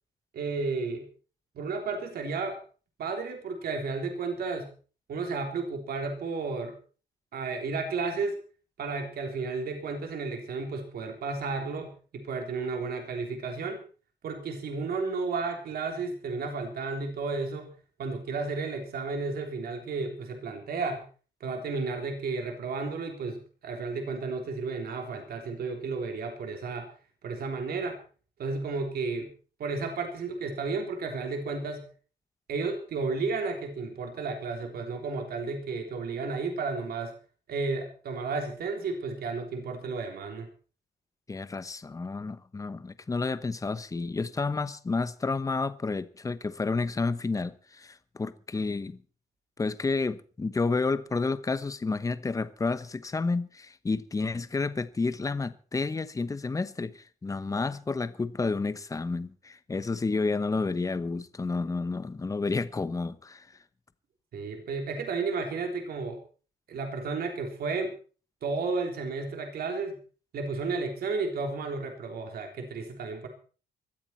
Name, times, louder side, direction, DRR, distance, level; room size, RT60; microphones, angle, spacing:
voice 1, 0.3-1.0 1.6-2.6 3.0-4.7 5.1-6.7 7.3-8.4 8.8-13.8 14.2-17.7 18.0-21.0 21.4-26.9 27.2-28.0 28.4-29.3 29.6-31.9 32.5-37.1 37.5-40.5 64.3-66.2 66.7-67.9 68.4-70.0 70.3-73.3, right 4 dB, 60° right, 3.6 m, -32 dB
voice 2, 41.3-49.0 49.6-63.5, left 3 dB, 20° left, 1.0 m, -30 dB
19.5 x 13.5 x 4.5 m
cardioid pair, 145°, 17 cm